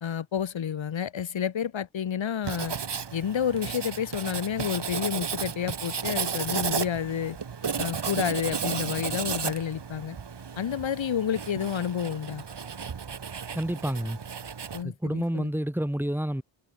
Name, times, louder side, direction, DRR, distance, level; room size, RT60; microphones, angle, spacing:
voice 1, 0.0-2.7 3.1-7.4 7.8-10.2 10.6-12.4 14.7-15.5, left 8 dB, 80° left, 1.8 m, -30 dB
Writing, 2.4-14.8, right 6 dB, 60° right, 5.1 m, -33 dB
voice 2, 13.5-14.2 14.8-16.4, equal, 5° right, 4.0 m, -29 dB
wide cardioid pair, 160°, 46 cm